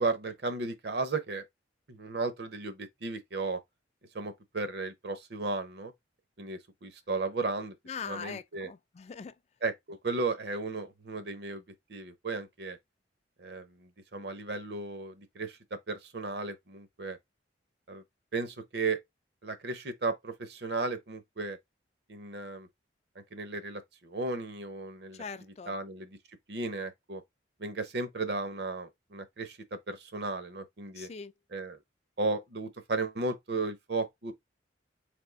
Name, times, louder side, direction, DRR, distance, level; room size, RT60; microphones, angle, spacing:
voice 1, 0.0-1.5 1.9-3.6 4.1-5.9 6.4-7.7 8.1-8.7 9.6-11.6 11.9-12.8 13.4-15.6 15.9-17.2 17.9-18.0 18.3-19.0 19.4-21.6 22.1-22.7 23.3-25.2 25.7-26.1 26.5-27.2 27.6-31.1 31.5-31.8 32.2-34.3, right 3 dB, 60° right, 0.7 m, -35 dB
voice 2, 7.9-9.4 25.1-25.7 30.9-31.3, left 6 dB, 35° left, 0.3 m, -41 dB
3.5 x 2.7 x 3.8 m
head